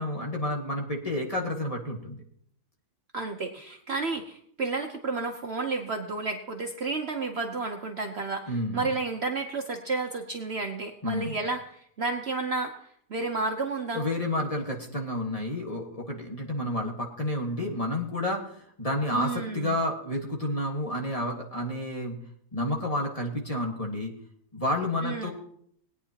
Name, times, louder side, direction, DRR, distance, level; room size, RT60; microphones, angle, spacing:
voice 1, 0.0-2.2 8.5-8.9 11.0-11.4 13.9-22.1 22.5-24.1 24.5-25.3, left 1 dB, 25° left, 0 dB, 1.6 m, -30 dB
voice 2, 3.1-14.0 19.1-19.7 25.0-25.3, right 3 dB, 50° right, 3 dB, 0.9 m, -31 dB
19.5 x 9.5 x 2.9 m, 0.65 s
omnidirectional pair, 1.7 m